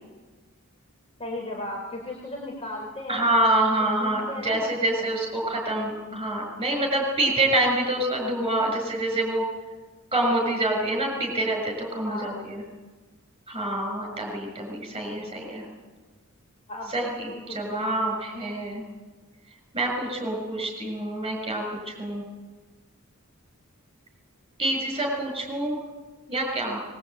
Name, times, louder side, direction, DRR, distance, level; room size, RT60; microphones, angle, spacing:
voice 1, 1.2-3.3 4.0-5.1 12.0-12.3 14.9-15.2 16.7-17.8, left 1 dB, 30° left, -2 dB, 4.4 m, -36 dB
voice 2, 3.1-9.4 10.1-12.6 13.5-15.7 16.9-18.8 19.7-22.2 24.6-25.8 26.3-26.8, right 1 dB, 25° right, 1 dB, 6.3 m, -26 dB
23.0 x 21.5 x 9.0 m, 1.3 s
head